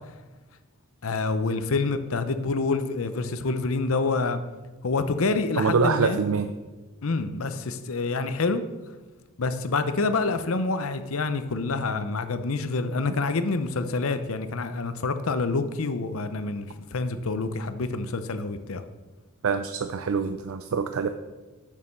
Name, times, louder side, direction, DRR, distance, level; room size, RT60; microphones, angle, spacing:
voice 1, 1.0-4.4 4.8-6.2 7.0-8.6 9.4-18.8, left 3 dB, 75° left, 10 dB, 0.7 m, -27 dB
voice 2, 5.6-6.5 19.4-21.1, right 5 dB, 70° right, 9 dB, 0.4 m, -25 dB
7.0 x 6.5 x 6.5 m, 1.2 s
head